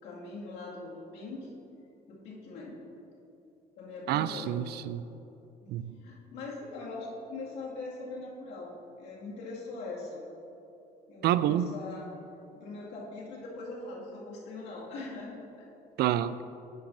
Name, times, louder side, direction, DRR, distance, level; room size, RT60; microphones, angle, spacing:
voice 1, 0.0-1.5 2.1-2.8 3.7-4.6 5.6-5.7 6.0-10.3 11.1-12.1 12.5-15.7, left 3 dB, 90° left, -5 dB, 2.2 m, -41 dB
voice 2, 4.1-5.1 5.7-5.9 11.2-11.7 16.0-16.4, right 11 dB, 70° right, 14 dB, 0.4 m, -28 dB
10.0 x 10.0 x 2.7 m, 2.9 s
cardioid pair, 110°, 17 cm